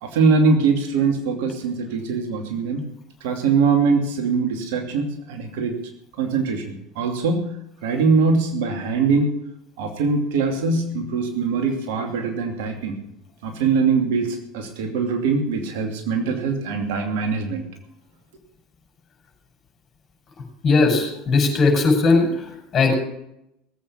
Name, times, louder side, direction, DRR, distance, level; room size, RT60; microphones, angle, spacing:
voice 1, 0.0-2.9 3.2-5.8 6.2-7.5 7.8-9.3 9.8-13.0 13.4-17.7, right 4 dB, 70° right, 5 dB, 2.7 m, -22 dB
voice 2, 20.6-22.9, left 3 dB, 40° left, 2 dB, 6.2 m, -18 dB
18.5 x 8.5 x 7.4 m, 0.79 s
hypercardioid pair, 75°, 0 cm